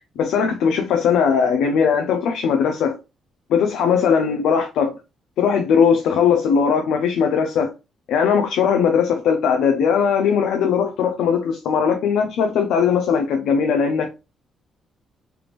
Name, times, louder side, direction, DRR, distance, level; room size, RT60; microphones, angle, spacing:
voice 1, 0.2-2.9 3.5-4.9 5.4-7.7 8.1-14.1, left 6 dB, 80° left, 0.5 m, -19 dB
3.4 x 2.4 x 3.3 m
cardioid pair, 90°, 0 cm